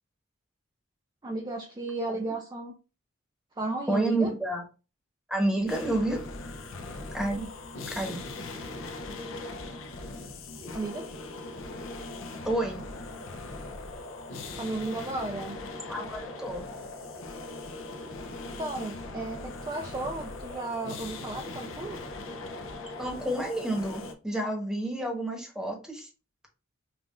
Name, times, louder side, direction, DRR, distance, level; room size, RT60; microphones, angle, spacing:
voice 1, 1.2-2.7 3.6-4.3 10.7-11.3 14.6-15.6 18.5-22.0, right 2 dB, 20° right, 1 dB, 0.4 m, -34 dB
voice 2, 3.9-4.6 5.3-6.2 7.1-7.5 7.9-8.3 12.4-12.8 15.9-16.7 23.0-26.1, right 1 dB, 5° right, 1 dB, 1.0 m, -29 dB
sound 1, 5.7-24.1, left 2 dB, 65° left, 0.6 m, -40 dB
5.3 x 2.4 x 2.4 m, 0.32 s
head